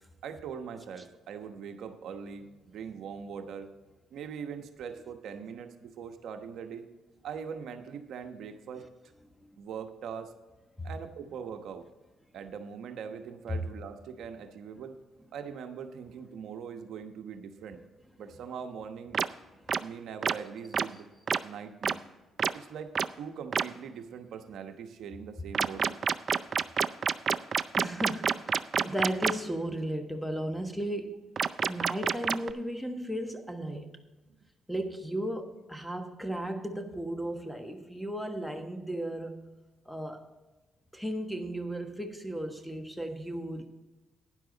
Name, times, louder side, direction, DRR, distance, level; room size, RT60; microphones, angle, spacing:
voice 1, 0.2-3.7 4.1-6.9 7.2-8.8 9.6-10.3 10.8-11.9 12.3-15.0 15.3-17.8 18.2-19.2 19.8-21.1 21.4-22.0 22.5-26.0, right 7 dB, 75° right, 6 dB, 1.0 m, -41 dB
sound 1, 19.1-19.3 19.7-19.8 20.2-20.3 20.7-20.8 21.3-21.4 21.8-21.9 22.4-22.5 23.0-23.1 23.5-23.6 25.5-29.3 31.4-32.5, right 6 dB, 45° right, 0.4 m, -27 dB
voice 2, 27.8-31.3 31.7-33.9 34.7-39.4 39.9-40.2 40.9-43.6, right 1 dB, ahead, 6 dB, 1.4 m, -35 dB
12.5 x 10.0 x 4.0 m, 1.1 s
cardioid pair, 90°, 0 cm